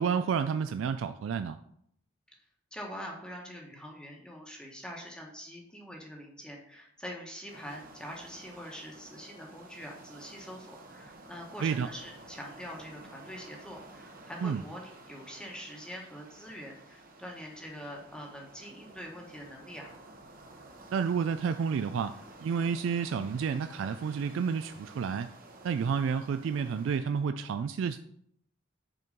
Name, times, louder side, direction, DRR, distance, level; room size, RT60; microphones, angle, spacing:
voice 1, 0.0-1.6 11.6-11.9 14.4-14.6 20.9-25.3 25.6-28.0, right 6 dB, 75° right, 10 dB, 0.3 m, -30 dB
voice 2, 2.7-19.9, equal, 5° left, -1 dB, 1.1 m, -44 dB
sound 1, 7.5-27.0, right 2 dB, 45° right, 1.0 m, -52 dB
6.3 x 4.5 x 5.1 m, 0.71 s
head